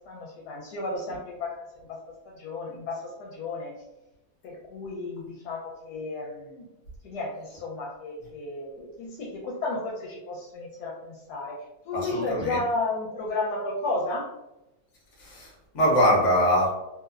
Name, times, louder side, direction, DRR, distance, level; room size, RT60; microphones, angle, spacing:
voice 1, 0.1-1.9 2.3-3.7 4.4-6.7 7.0-11.6 11.9-14.3, left 2 dB, 80° left, -3 dB, 1.1 m, -33 dB
voice 2, 11.9-12.6 15.2-16.7, equal, 55° left, -3 dB, 0.9 m, -23 dB
2.8 x 2.0 x 2.3 m, 0.96 s
omnidirectional pair, 1.7 m